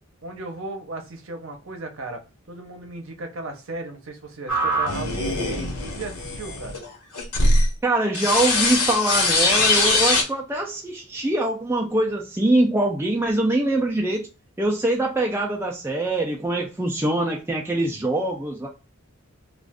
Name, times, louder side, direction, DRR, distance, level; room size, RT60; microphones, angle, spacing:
voice 1, 0.2-2.2 2.5-6.8, right 2 dB, 60° right, 0.8 m, -36 dB
sound 1, 4.5-7.7 8.1-10.2, left 2 dB, 90° left, 1.1 m, -22 dB
voice 2, 7.8-14.3 14.6-18.7, right 1 dB, 10° right, 0.4 m, -23 dB
2.4 x 2.4 x 3.4 m
head